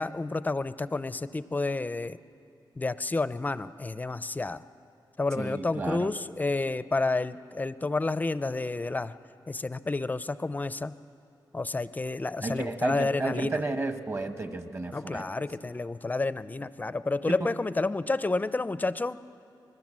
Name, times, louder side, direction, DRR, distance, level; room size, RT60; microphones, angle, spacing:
voice 1, 0.0-2.2 2.8-4.6 5.2-9.1 9.5-10.9 11.5-13.6 14.9-19.2, left 3 dB, 20° left, 14 dB, 0.5 m, -30 dB
voice 2, 5.3-6.1 12.4-15.3 17.3-17.5, right 3 dB, 30° right, 7 dB, 1.3 m, -32 dB
26.0 x 20.5 x 7.4 m, 2.6 s
wide cardioid pair, 140°, 8 cm